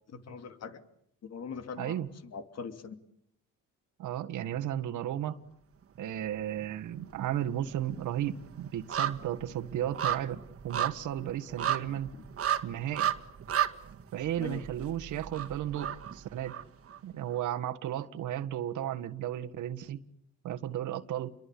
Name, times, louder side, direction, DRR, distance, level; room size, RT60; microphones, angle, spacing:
voice 1, 0.1-0.8 1.2-3.0 14.4-14.6, left 5 dB, 55° left, 2.9 m, -42 dB
voice 2, 1.8-2.1 4.0-5.4 6.0-12.1 12.6-13.1 14.1-16.6 17.0-20.0 20.4-21.3, right 11 dB, 80° right, 1.7 m, -34 dB
sound 1, 6.0-6.7 7.0-17.0 17.3-17.4, right 9 dB, 50° right, 1.9 m, -34 dB
29.5 x 23.0 x 8.5 m
cardioid pair, 90°, 30 cm